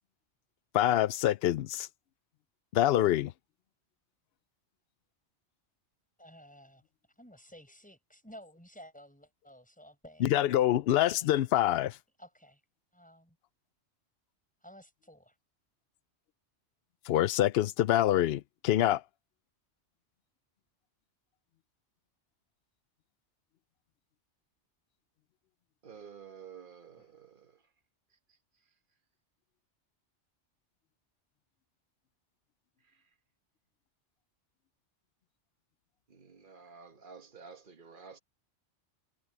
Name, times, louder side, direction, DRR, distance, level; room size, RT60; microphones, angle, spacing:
voice 1, 0.7-1.9 2.7-3.3 10.2-12.0 17.1-19.0, left 12 dB, 65° left, 0.7 m, -26 dB
voice 2, 6.2-6.8 7.2-10.4 12.2-12.6 12.9-13.4 14.6-15.3, equal, 5° left, 7.2 m, -53 dB
voice 3, 25.8-27.6 32.8-33.0 36.1-38.2, right 6 dB, 45° right, 1.5 m, -51 dB
omnidirectional pair, 1.2 m